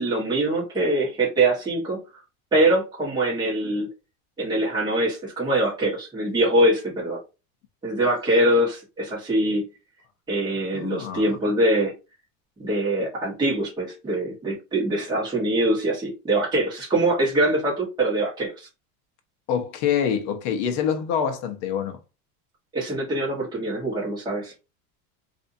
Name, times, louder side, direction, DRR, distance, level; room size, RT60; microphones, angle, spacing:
voice 1, 0.0-2.0 2.5-3.9 4.4-7.2 7.8-9.6 10.3-11.9 12.6-18.7 22.7-24.5, right 1 dB, 10° right, 1.4 m, -23 dB
voice 2, 10.7-11.4 19.5-22.0, left 8 dB, 50° left, 0.9 m, -26 dB
3.3 x 2.8 x 2.7 m
supercardioid pair, 155°, 43 cm